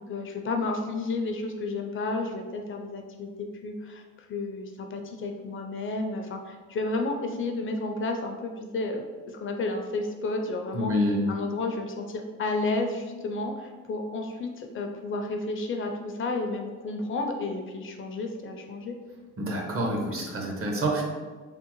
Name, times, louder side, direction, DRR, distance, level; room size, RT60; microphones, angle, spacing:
voice 1, 0.1-3.3 3.6-9.0 9.4-18.9, left 2 dB, 45° left, 3 dB, 0.4 m, -31 dB
voice 2, 10.7-11.2 19.4-21.0, equal, 45° right, -1 dB, 0.8 m, -27 dB
3.6 x 2.1 x 2.9 m, 1.4 s
cardioid pair, 90°, 30 cm